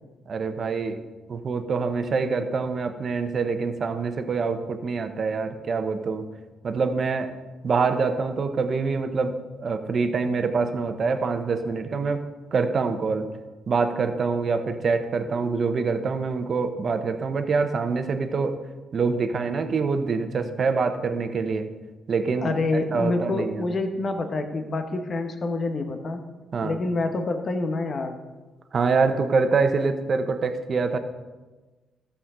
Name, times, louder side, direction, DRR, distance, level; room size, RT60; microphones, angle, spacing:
voice 1, 0.3-1.0 1.3-6.3 6.6-7.3 7.6-12.2 12.5-13.3 13.7-18.6 18.9-21.7 22.1-22.5 22.9-23.6 26.5-26.8 28.7-31.0, right 4 dB, 50° right, 8 dB, 0.9 m, -25 dB
voice 2, 22.4-26.2 26.6-28.2, left 2 dB, 45° left, 6 dB, 1.0 m, -27 dB
13.0 x 7.1 x 3.7 m, 1.2 s
cardioid pair, 90°, 0 cm